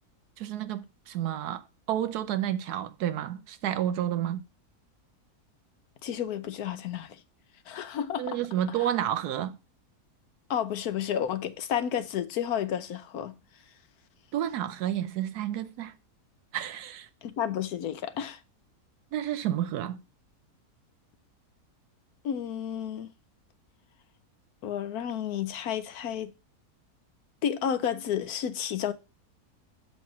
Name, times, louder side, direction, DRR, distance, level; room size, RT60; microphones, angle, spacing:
voice 1, 0.4-4.4 8.2-9.6 14.3-15.9 16.5-17.1 19.1-20.0, right 11 dB, 85° right, 1.2 m, -30 dB
voice 2, 6.0-7.2 7.7-8.4 10.5-13.4 17.2-18.4 22.2-23.1 24.6-26.3 27.4-28.9, left 9 dB, 75° left, 1.2 m, -31 dB
7.5 x 3.9 x 5.9 m
omnidirectional pair, 1.6 m